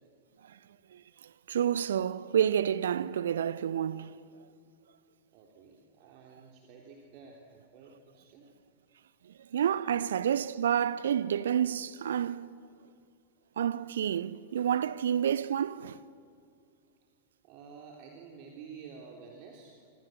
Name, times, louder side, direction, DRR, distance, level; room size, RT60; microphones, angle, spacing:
voice 1, 0.9-4.2 9.2-12.5 13.6-16.0, right 9 dB, 65° right, 0.8 m, -29 dB
voice 2, 5.3-8.4 10.0-10.1 17.4-19.8, right 5 dB, 45° right, 3.5 m, -50 dB
28.0 x 26.5 x 7.8 m
figure-of-eight pair, 90°, 0 cm